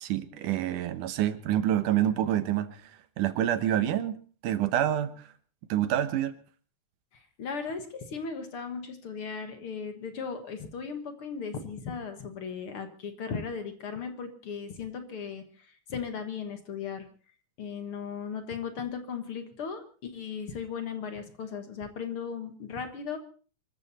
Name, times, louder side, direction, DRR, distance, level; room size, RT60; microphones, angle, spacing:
voice 1, 0.0-2.9 3.2-5.3 5.7-6.4, right 11 dB, 80° right, 12 dB, 2.7 m, -27 dB
voice 2, 7.1-17.1 17.6-23.2, left 6 dB, 50° left, 8 dB, 2.1 m, -37 dB
24.5 x 14.0 x 4.2 m, 0.40 s
omnidirectional pair, 3.5 m